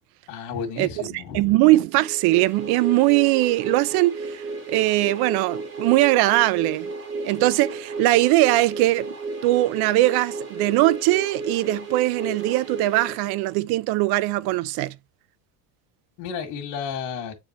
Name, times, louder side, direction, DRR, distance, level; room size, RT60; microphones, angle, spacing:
voice 1, 0.3-1.5 16.2-17.3, left 6 dB, 90° left, 2.3 m, -32 dB
voice 2, 1.1-6.9 7.2-9.1 9.4-14.9, right 18 dB, 60° right, 0.6 m, -21 dB
sound 1, 2.0-13.8, right 3 dB, 35° right, 3.3 m, -34 dB
8.8 x 4.5 x 3.1 m
cardioid pair, 160°, 44 cm